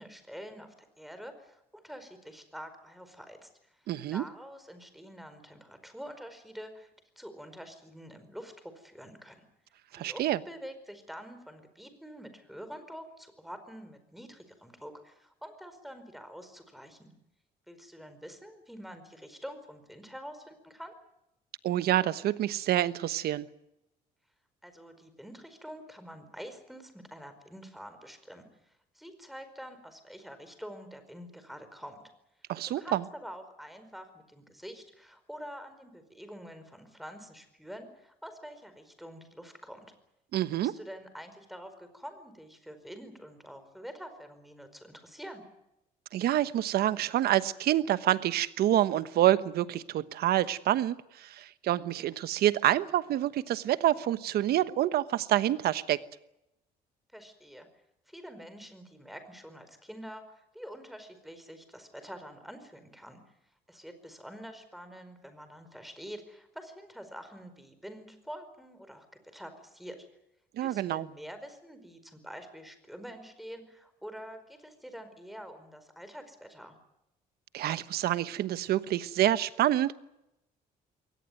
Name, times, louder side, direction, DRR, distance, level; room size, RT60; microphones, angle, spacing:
voice 1, 0.0-6.9 7.2-9.4 9.9-17.1 17.7-20.9 24.6-32.0 32.6-39.9 40.6-45.4 57.1-57.7 58.1-63.2 63.7-70.1 70.6-76.7, equal, ahead, 9 dB, 4.8 m, -46 dB
voice 2, 3.9-4.2 9.9-10.4 21.6-23.5 32.5-33.0 40.3-40.7 46.1-56.0 70.6-71.1 77.5-79.9, right 13 dB, 70° right, 14 dB, 1.1 m, -27 dB
22.5 x 19.0 x 9.3 m, 0.86 s
cardioid pair, 110°, 17 cm